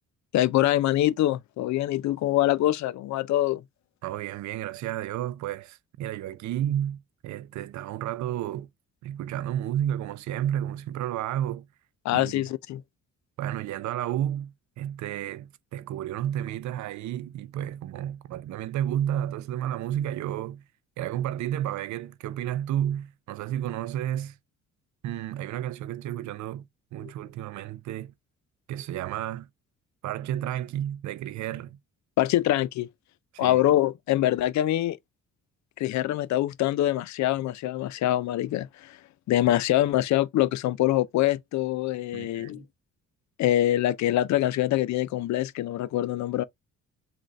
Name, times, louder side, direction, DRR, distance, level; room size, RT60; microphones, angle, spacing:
voice 1, 0.3-3.6 12.0-12.8 27.0-27.1 32.2-32.9 33.4-35.0 35.8-39.0 39.3-42.6 43.4-46.4, left 14 dB, 65° left, 0.5 m, -24 dB
voice 2, 4.0-8.7 9.0-11.7 12.1-12.4 13.4-20.6 21.0-24.4 25.0-26.6 26.9-28.1 28.7-29.5 30.0-31.8 33.3-33.6 42.1-42.7, right 11 dB, 70° right, 0.5 m, -31 dB
3.8 x 2.5 x 3.1 m
cardioid pair, 90°, 30 cm